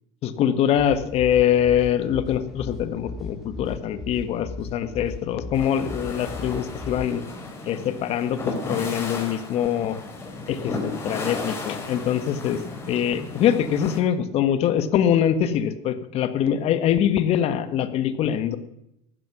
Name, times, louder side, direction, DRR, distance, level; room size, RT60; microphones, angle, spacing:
voice 1, 0.2-7.2 7.6-10.0 10.5-12.6 12.9-18.6, left 9 dB, 50° left, 11 dB, 1.5 m, -23 dB
sound 1, 0.8-7.1, left 2 dB, ahead, 5.2 m, -37 dB
sound 2, 5.5-14.0, left 2 dB, 20° left, 4.3 m, -34 dB
15.0 x 11.5 x 6.2 m, 0.80 s
supercardioid pair, 125°, 14 cm